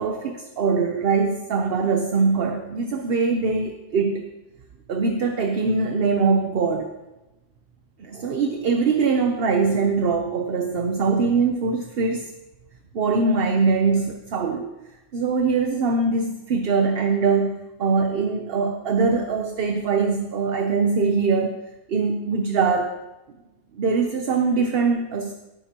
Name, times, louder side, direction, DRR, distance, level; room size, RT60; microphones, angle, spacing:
voice 1, 0.0-4.2 4.9-6.9 8.0-12.3 12.9-14.7 15.1-21.6 21.9-23.0 23.7-25.3, right 4 dB, 55° right, 5 dB, 1.0 m, -22 dB
18.0 x 9.7 x 2.9 m, 1.0 s
omnidirectional pair, 1.2 m